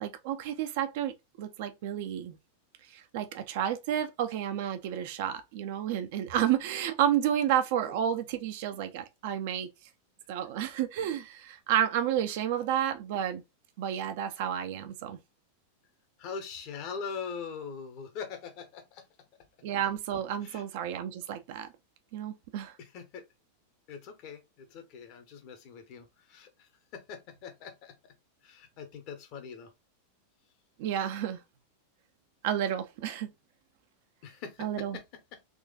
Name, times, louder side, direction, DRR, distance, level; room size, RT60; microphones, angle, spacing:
voice 1, 0.0-1.1 1.4-2.4 2.9-9.7 10.3-13.4 13.8-15.2 19.6-21.7 22.1-22.7 30.8-31.4 32.4-33.3 34.6-35.0, right 10 dB, 50° right, 0.6 m, -31 dB
voice 2, 16.2-19.0 20.4-20.6 22.8-23.2 23.9-27.9 28.4-29.7 34.2-35.0, left 6 dB, 45° left, 1.0 m, -42 dB
3.7 x 3.1 x 2.3 m
figure-of-eight pair, 90°, 0 cm